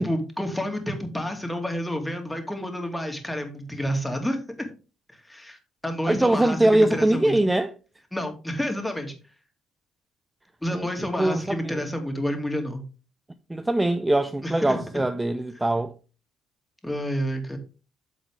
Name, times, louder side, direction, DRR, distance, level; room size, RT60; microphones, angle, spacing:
voice 1, 0.0-4.7 5.1-7.3 8.1-9.1 10.6-12.8 14.4-15.0 16.8-17.6, equal, 10° left, 2.5 m, -29 dB
voice 2, 6.1-7.7 10.7-10.9 11.2-11.8 13.5-15.9, right 1 dB, 15° right, 0.7 m, -22 dB
8.3 x 7.3 x 3.6 m
hypercardioid pair, 50°, 0 cm